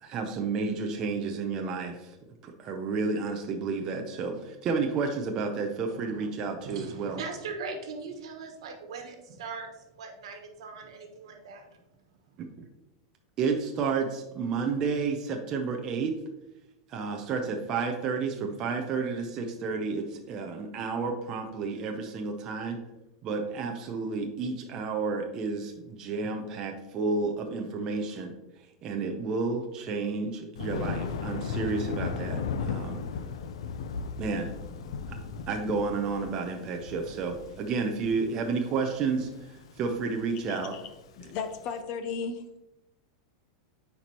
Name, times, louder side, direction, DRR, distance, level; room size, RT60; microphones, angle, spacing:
voice 1, 0.0-2.2 2.4-7.2 12.4-12.5 13.4-16.2 16.9-22.8 23.2-28.3 28.8-33.0 34.2-34.5 35.1-35.2 35.5-40.7, right 4 dB, 20° right, 3 dB, 0.5 m, -31 dB
voice 2, 5.9-6.3 6.6-11.8, right 4 dB, 75° right, 4 dB, 1.2 m, -40 dB
Thunder, 30.6-41.7, left 5 dB, 80° left, 0.5 m, -36 dB
voice 3, 40.5-40.8 41.2-42.4, left 5 dB, 30° left, 8 dB, 0.5 m, -35 dB
9.2 x 4.5 x 2.9 m, 0.94 s
supercardioid pair, 180°, 3 cm